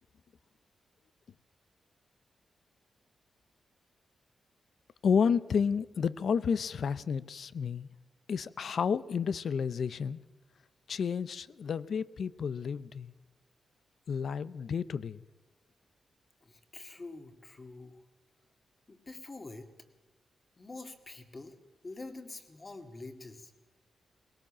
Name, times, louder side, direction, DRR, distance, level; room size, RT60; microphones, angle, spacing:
voice 1, 5.0-7.9 8.3-10.2 10.9-13.1 14.1-15.2, left 6 dB, 65° left, 0.6 m, -31 dB
voice 2, 16.4-18.0 18.9-19.7 20.6-21.6 21.8-23.5, left 2 dB, 30° left, 2.1 m, -46 dB
20.0 x 18.5 x 7.4 m
cardioid pair, 100°, 0 cm